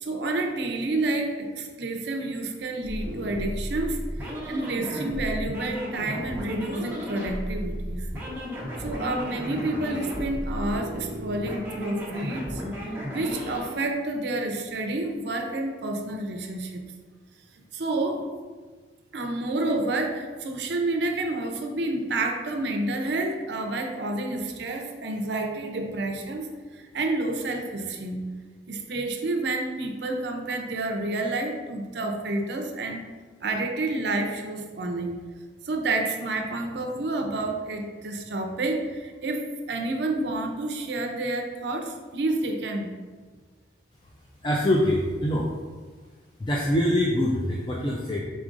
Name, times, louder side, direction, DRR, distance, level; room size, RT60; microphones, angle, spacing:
voice 1, 0.0-8.1 8.8-16.8 17.7-18.2 19.1-28.2 28.7-33.0 33.4-35.2 35.6-42.9, right 2 dB, 65° right, 3 dB, 0.5 m, -29 dB
sound 1, 2.8-13.7, equal, 10° right, 0.8 m, -33 dB
voice 2, 44.4-45.5 46.4-48.2, left 1 dB, 25° left, -2 dB, 0.3 m, -24 dB
4.9 x 3.8 x 2.5 m, 1.4 s
head